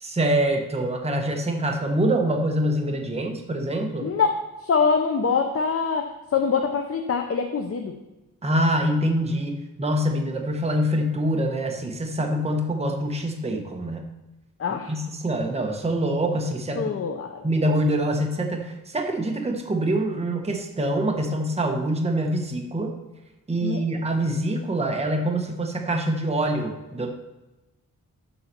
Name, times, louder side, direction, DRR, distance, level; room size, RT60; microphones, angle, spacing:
voice 1, 0.0-4.1 8.4-14.0 14.9-16.9 17.4-22.9 23.5-27.1, right 1 dB, 20° right, 3 dB, 1.0 m, -25 dB
voice 2, 4.0-7.9 14.6-14.9 16.8-17.5 23.6-23.8, left 5 dB, 45° left, 4 dB, 0.7 m, -24 dB
7.1 x 5.6 x 6.7 m, 1.1 s
wide cardioid pair, 140°, 34 cm